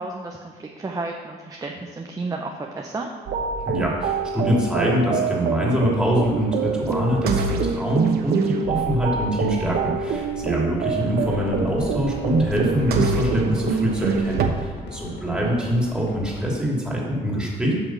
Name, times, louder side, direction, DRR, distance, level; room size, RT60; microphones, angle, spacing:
voice 1, 0.0-3.1 15.3-15.6, right 3 dB, 20° right, 1 dB, 0.9 m, -32 dB
sound 1, 3.3-14.5, right 5 dB, 75° right, 1.0 m, -25 dB
voice 2, 3.6-17.7, right 1 dB, 5° right, -3 dB, 2.8 m, -24 dB
sound 2, 9.4-14.7, equal, 15° left, 2.1 m, -41 dB
sound 3, 10.9-16.5, left 2 dB, 80° left, 1.8 m, -39 dB
8.2 x 6.2 x 6.2 m, 1.5 s
cardioid pair, 100°, 16 cm